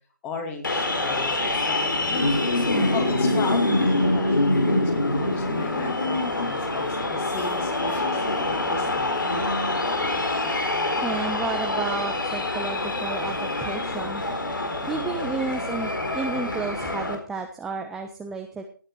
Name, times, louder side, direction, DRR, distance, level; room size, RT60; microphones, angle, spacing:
voice 1, 0.2-2.4 2.9-9.7, left 3 dB, 15° left, 5 dB, 2.4 m, -36 dB
sound 1, 0.6-17.2, left 2 dB, 70° left, 4.3 m, -25 dB
voice 2, 11.0-14.2 14.9-18.6, right 4 dB, 5° right, 4 dB, 0.6 m, -32 dB
17.5 x 9.1 x 4.6 m, 0.40 s
figure-of-eight pair, 150°, 11 cm